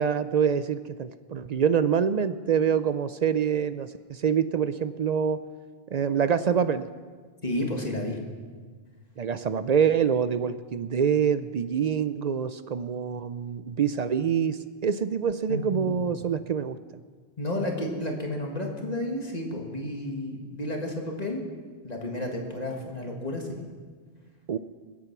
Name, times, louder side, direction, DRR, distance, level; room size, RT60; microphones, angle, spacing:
voice 1, 0.0-5.4 5.9-6.9 9.2-16.8 24.5-24.6, right 7 dB, 55° right, 13 dB, 0.4 m, -25 dB
voice 2, 7.4-8.2 15.5-16.0 17.4-21.4 21.8-23.6, left 1 dB, 35° left, 1 dB, 1.9 m, -31 dB
21.0 x 8.5 x 6.0 m, 1.5 s
omnidirectional pair, 1.1 m